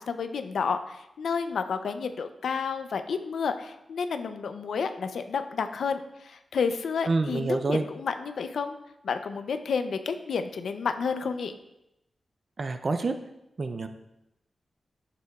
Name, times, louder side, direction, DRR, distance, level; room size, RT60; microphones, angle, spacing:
voice 1, 0.0-8.8 9.0-11.6, left 5 dB, 85° left, 8 dB, 0.5 m, -30 dB
voice 2, 7.1-7.9 12.6-13.1 13.6-13.9, right 3 dB, 40° right, 8 dB, 0.4 m, -27 dB
11.0 x 6.9 x 2.3 m, 0.88 s
wide cardioid pair, 160°, 0 cm